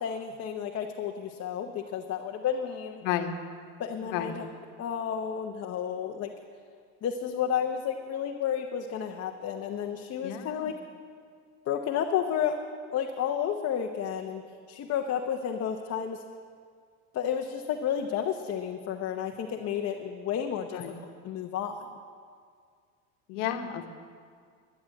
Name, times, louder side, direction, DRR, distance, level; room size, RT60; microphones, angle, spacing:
voice 1, 0.0-3.0 3.8-4.5 4.8-6.3 7.0-10.7 11.7-12.5 12.9-14.4 14.7-16.2 17.1-21.9, left 8 dB, 40° left, 3 dB, 0.9 m, -31 dB
voice 2, 3.0-3.4 4.0-4.4 10.2-10.7 20.7-20.9 23.3-23.9, left 9 dB, 80° left, 6 dB, 1.3 m, -32 dB
11.0 x 11.0 x 7.8 m, 2.1 s
supercardioid pair, 95°, 36 cm